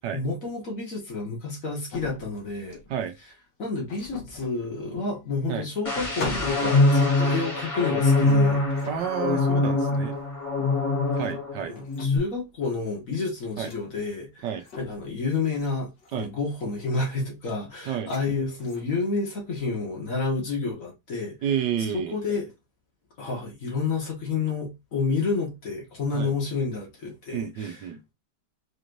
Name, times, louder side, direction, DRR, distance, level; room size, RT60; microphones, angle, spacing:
voice 1, 0.1-2.8 3.6-8.9 10.6-10.7 11.7-14.5 14.8-21.4 21.9-22.5 23.2-27.8, left 4 dB, 50° left, 1.9 m, -30 dB
sound 1, 1.9-3.1 3.9-4.6 5.4-5.5 5.9-7.4 8.2-9.1 10.1-10.3 11.0-11.4 11.8-12.4 13.5-13.8 14.5-15.1 15.5-15.7 16.0-16.4 18.0-18.3 18.6-19.0, left 3 dB, 70° left, 1.8 m, -40 dB
sound 2, 5.8-11.6 11.9-12.2, left 2 dB, 20° left, 1.3 m, -23 dB
voice 2, 8.9-10.2 11.2-11.8 13.6-13.7 14.4-14.6 16.1-16.3 17.9-18.1 21.4-22.2 26.1-26.3 27.3-28.0, right 8 dB, 75° right, 1.4 m, -30 dB
5.0 x 3.1 x 2.6 m
omnidirectional pair, 1.9 m